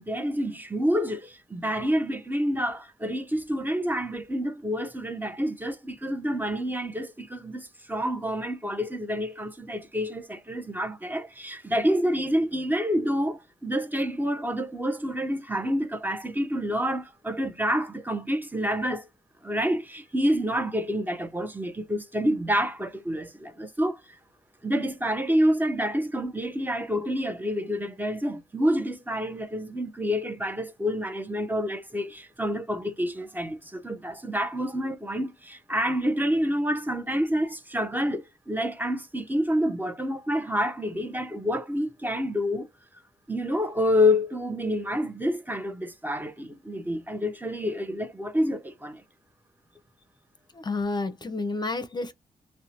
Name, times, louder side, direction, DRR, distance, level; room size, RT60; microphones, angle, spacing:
voice 1, 0.0-19.1 19.4-24.0 24.6-42.7 43.3-49.0, equal, 15° right, 0.7 m, -28 dB
voice 2, 50.5-52.1, left 3 dB, 30° left, 0.6 m, -30 dB
2.6 x 2.1 x 2.8 m
cardioid pair, 80°, 14 cm